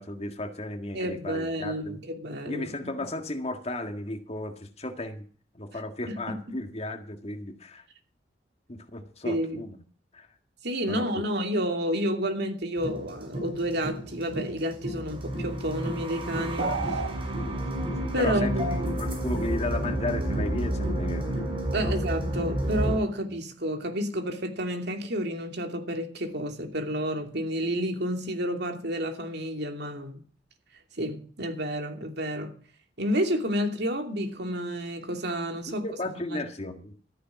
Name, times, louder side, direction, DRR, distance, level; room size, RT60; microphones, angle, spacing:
voice 1, 0.0-2.0 2.5-5.2 5.5-7.8 8.7-9.8 10.1-10.3 10.9-11.2 16.8-16.9 17.4-21.4 21.8-21.9 35.7-36.9, left 1 dB, 35° left, 1.8 m, -35 dB
voice 2, 0.9-3.0 6.3-6.4 9.2-9.6 10.6-17.0 18.1-19.0 21.7-30.2 31.0-32.5 33.0-35.9 36.3-36.4, equal, 60° right, 2.7 m, -30 dB
sound 1, 12.8-23.0, right 1 dB, 30° right, 5.8 m, -30 dB
sound 2, 16.6-17.1, right 4 dB, 75° right, 1.5 m, -30 dB
14.0 x 10.0 x 6.0 m
head